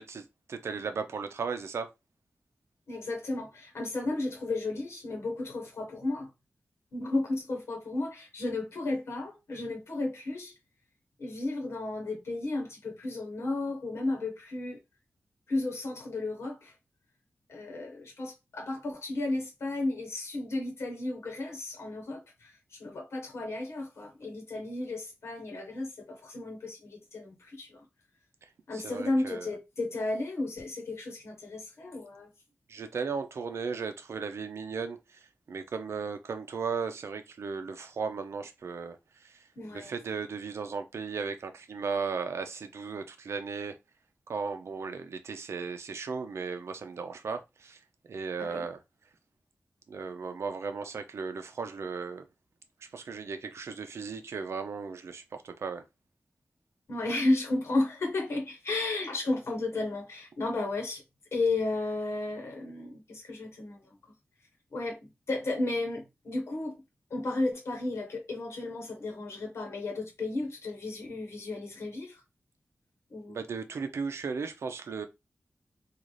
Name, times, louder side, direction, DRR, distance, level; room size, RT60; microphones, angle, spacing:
voice 1, 0.0-1.9 28.7-29.6 32.7-43.8 44.3-47.8 48.1-48.8 49.9-52.3 52.8-55.9 73.3-75.1, right 5 dB, 80° right, 0.5 m, -36 dB
voice 2, 2.9-6.3 6.9-10.5 11.2-14.8 15.5-16.7 17.5-27.8 28.7-32.3 39.6-39.9 48.4-48.7 56.9-61.0 61.3-64.0 64.7-66.8 67.1-72.2 73.1-73.4, left 2 dB, 75° left, 1.0 m, -33 dB
3.8 x 2.4 x 3.1 m
wide cardioid pair, 145°, 5 cm